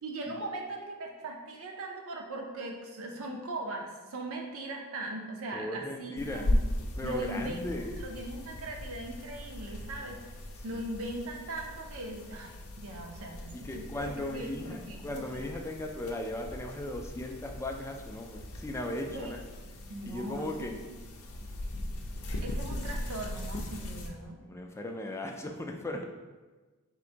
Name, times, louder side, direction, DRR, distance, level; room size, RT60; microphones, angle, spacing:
voice 1, 0.0-6.6 7.0-7.6 8.0-10.2 10.6-15.5 19.1-19.3 19.9-20.7 22.4-24.4, right 2 dB, 65° right, 2 dB, 0.6 m, -39 dB
voice 2, 5.5-6.6 6.9-7.9 13.5-19.4 20.1-20.8 24.5-26.0, left 1 dB, 10° left, 2 dB, 0.3 m, -37 dB
sound 1, 6.2-24.1, left 1 dB, 70° left, 0.5 m, -38 dB
3.7 x 2.6 x 4.4 m, 1.3 s
head